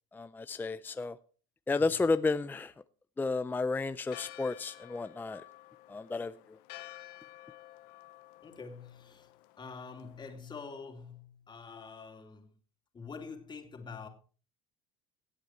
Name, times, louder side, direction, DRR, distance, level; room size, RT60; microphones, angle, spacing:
voice 1, 0.1-1.2 1.7-2.7 3.2-5.4 5.9-6.6, left 3 dB, 10° left, 0.5 m, -32 dB
voice 2, 1.7-2.1 8.4-12.6 12.9-14.1, left 5 dB, 25° left, 2.8 m, -46 dB
Church bell, 4.1-10.4, left 17 dB, 70° left, 0.9 m, -52 dB
17.5 x 8.0 x 4.4 m
supercardioid pair, 95°, 16 cm